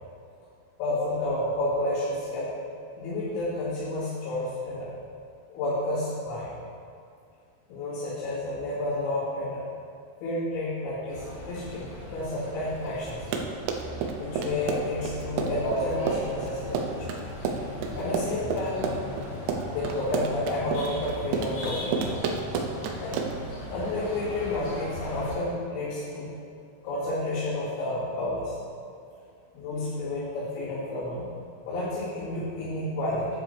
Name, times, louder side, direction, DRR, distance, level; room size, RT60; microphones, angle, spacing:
voice 1, 0.8-2.6 3.0-4.9 5.5-6.5 7.7-9.6 10.2-11.8 12.1-13.3 14.2-17.1 17.9-18.8 19.7-22.1 23.0-23.2 23.7-26.3 26.8-28.5 29.5-31.2 31.6-33.3, left 1 dB, 85° left, -12 dB, 5.0 m, -30 dB
sound 1, 11.1-25.3, left 1 dB, 55° left, 3.4 m, -39 dB
Run, 13.1-23.5, right 5 dB, 80° right, 2.6 m, -30 dB
11.5 x 9.9 x 3.4 m, 2.3 s
omnidirectional pair, 5.9 m